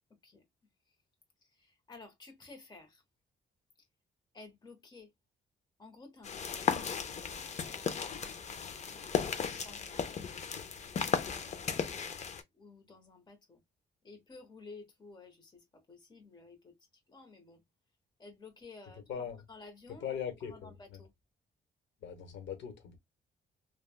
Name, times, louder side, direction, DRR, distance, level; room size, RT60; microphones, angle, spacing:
voice 1, 1.9-3.0 4.3-5.1 5.8-10.0 11.2-11.9 12.5-13.6 14.0-15.5 15.9-16.7 17.1-17.6 18.2-19.0 19.5-20.1 20.5-21.1, left 3 dB, 25° left, 1.0 m, -54 dB
sound 1, 6.2-12.4, left 6 dB, 40° left, 0.5 m, -35 dB
voice 2, 18.9-19.4 19.9-21.0 22.0-23.0, left 8 dB, 85° left, 1.0 m, -41 dB
3.2 x 2.2 x 2.2 m
wide cardioid pair, 155°, 18 cm